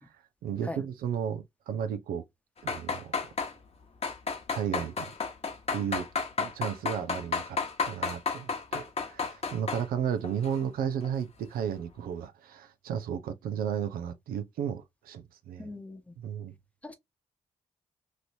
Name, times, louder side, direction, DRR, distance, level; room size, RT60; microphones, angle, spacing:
voice 1, 0.0-2.2 2.6-3.3 4.5-5.1 5.7-6.1 6.4-7.6 7.9-15.7 16.2-16.5, right 8 dB, 75° right, 0.5 m, -34 dB
sound 1, 2.6-3.5 4.0-9.9 10.2-10.6 11.0-11.1, left 5 dB, 45° left, 1.0 m, -32 dB
voice 2, 15.6-16.1 16.8-16.9, left 2 dB, 10° left, 0.9 m, -40 dB
3.1 x 2.7 x 2.7 m
hypercardioid pair, 45°, 15 cm